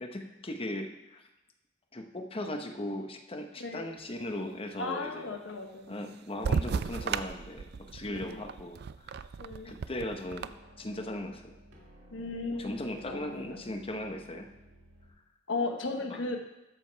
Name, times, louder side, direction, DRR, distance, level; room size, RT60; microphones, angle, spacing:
voice 1, 0.0-1.2 1.9-5.3 5.9-9.2 9.6-10.5 10.8-11.5 12.5-14.5 16.1-16.2, left 1 dB, 30° left, 5 dB, 0.9 m, -38 dB
voice 2, 4.8-5.9 8.1-8.4 9.4-9.7 12.1-12.7 13.1-13.6 15.5-16.4, left 3 dB, 75° left, 4 dB, 1.1 m, -36 dB
sound 1, 6.4-10.5, right 5 dB, 55° right, 0.4 m, -34 dB
sound 2, 9.3-15.1, right 1 dB, 85° right, 2.0 m, -56 dB
13.0 x 5.3 x 4.5 m, 0.96 s
head